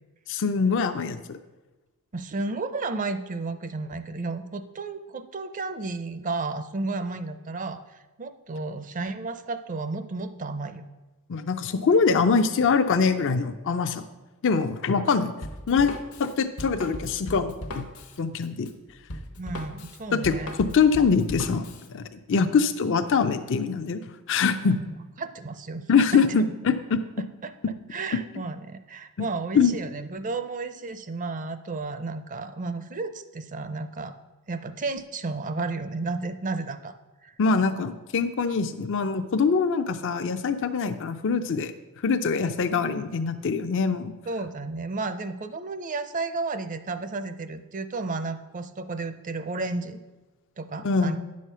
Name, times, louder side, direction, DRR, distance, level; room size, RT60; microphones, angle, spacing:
voice 1, 0.3-1.4 11.3-14.0 14.4-15.3 15.7-15.9 16.2-17.9 18.2-18.7 20.1-21.7 21.9-24.0 24.3-24.8 25.9-27.0 29.2-29.3 29.5-29.7 37.4-41.7 42.0-44.1 50.8-51.2, left 5 dB, 60° left, 8 dB, 0.5 m, -23 dB
voice 2, 2.1-10.9 19.4-20.5 22.3-22.5 24.6-25.9 26.4-26.5 27.4-27.5 27.9-34.2 34.5-36.9 37.2-37.3 44.3-50.0 50.6-51.2, right 3 dB, 35° right, 11 dB, 0.5 m, -33 dB
Drum kit, 15.4-21.9, left 1 dB, 75° left, 1.0 m, -38 dB
9.5 x 6.4 x 5.6 m, 1.2 s
head